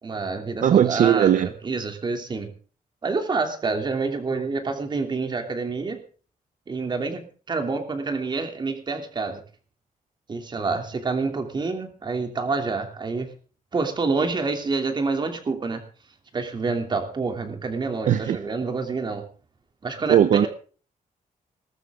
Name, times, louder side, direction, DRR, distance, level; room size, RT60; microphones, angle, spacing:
voice 1, 0.0-2.5 3.0-6.0 6.7-9.4 10.3-13.3 13.7-15.8 16.3-19.2 19.8-20.5, right 4 dB, 30° right, 6 dB, 3.0 m, -27 dB
voice 2, 0.6-1.5 18.1-18.4 20.1-20.5, right 10 dB, 60° right, 13 dB, 0.8 m, -18 dB
19.5 x 14.0 x 3.7 m, 0.39 s
wide cardioid pair, 175°, 14 cm